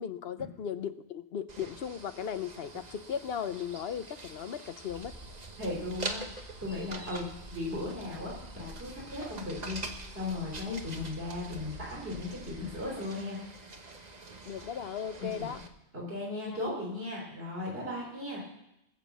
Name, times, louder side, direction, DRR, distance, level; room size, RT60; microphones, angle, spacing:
voice 1, 0.0-5.1 10.7-10.8 14.5-15.6 16.3-16.6, left 8 dB, 65° left, 12 dB, 0.9 m, -37 dB
sound 1, 1.5-15.7, right 2 dB, 40° right, 1.3 m, -45 dB
sound 2, 4.9-12.9, right 1 dB, 85° right, 5.3 m, -49 dB
voice 2, 5.6-13.4 15.2-15.5 15.9-18.5, left 2 dB, 60° right, -3 dB, 3.6 m, -37 dB
20.5 x 7.3 x 7.1 m, 0.86 s
omnidirectional pair, 1.1 m